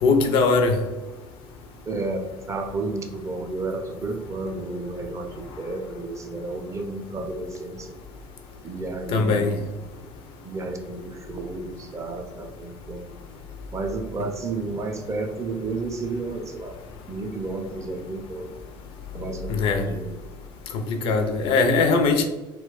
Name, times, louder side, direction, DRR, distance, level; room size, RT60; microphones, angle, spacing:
voice 1, 0.0-0.8 9.1-9.5 19.5-19.9 20.9-22.3, left 4 dB, 50° left, 6 dB, 0.4 m, -20 dB
voice 2, 1.9-7.9 8.6-9.7 10.4-13.1 13.7-16.8 17.1-18.5 19.1-20.1, right 3 dB, 25° right, 4 dB, 0.4 m, -32 dB
2.3 x 2.2 x 3.6 m, 1.1 s
figure-of-eight pair, 60°, 12 cm